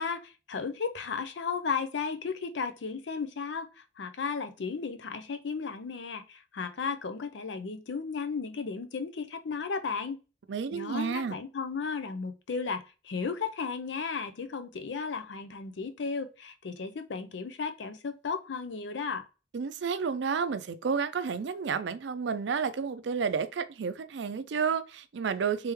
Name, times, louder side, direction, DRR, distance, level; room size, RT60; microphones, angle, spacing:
voice 1, 0.0-10.2 10.7-19.2, left 5 dB, 75° left, 0.5 m, -34 dB
voice 2, 10.5-11.4 19.5-25.7, right 6 dB, 70° right, 0.4 m, -31 dB
3.4 x 3.4 x 3.1 m
head